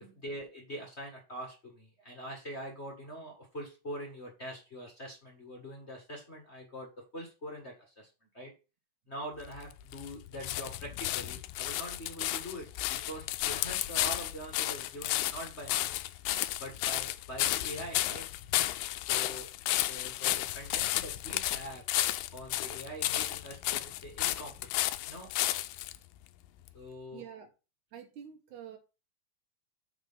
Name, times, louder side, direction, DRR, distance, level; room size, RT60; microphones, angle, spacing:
voice 1, 0.1-8.1 8.3-8.5 9.1-15.9 16.6-18.2 19.1-19.5 19.9-21.8 22.3-25.3 26.7-27.2, equal, 30° left, 0 dB, 1.3 m, -43 dB
sound 1, 9.4-26.0 26.7-26.8, left 15 dB, 90° left, 2.3 m, -33 dB
voice 2, 27.1-27.5 27.9-28.8, right 9 dB, 65° right, 5 dB, 2.8 m, -48 dB
7.7 x 4.8 x 5.6 m, 0.31 s
omnidirectional pair, 3.8 m